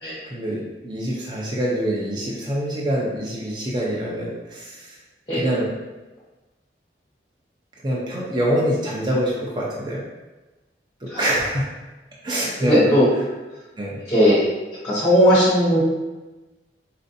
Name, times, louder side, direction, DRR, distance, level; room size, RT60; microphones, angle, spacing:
voice 1, 0.2-5.0 5.3-5.7 7.8-10.0 11.0-11.7 12.2-13.2 13.8-14.0, right 1 dB, 25° right, -4 dB, 0.5 m, -25 dB
voice 2, 12.6-13.1 14.1-14.4 14.8-15.8, equal, 20° left, -10 dB, 0.9 m, -17 dB
4.3 x 2.5 x 2.6 m, 1.1 s
head